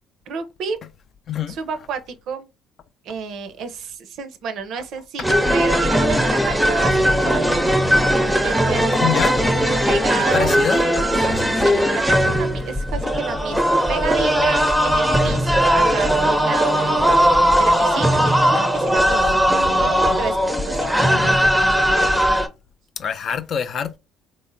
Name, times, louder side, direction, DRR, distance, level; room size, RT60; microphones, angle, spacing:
voice 1, 0.3-0.8 1.5-2.5 3.0-7.5 8.4-9.4 9.9-10.6 11.2-17.2 17.6-22.1, right 5 dB, 65° right, 0.5 m, -31 dB
voice 2, 1.3-1.6 9.0-9.4 10.3-10.8 11.4-11.5 23.0-24.0, left 8 dB, 50° left, 0.4 m, -25 dB
sound 1, 5.2-22.5, equal, ahead, 0.5 m, -18 dB
3.1 x 2.0 x 2.5 m
hypercardioid pair, 60°, 0 cm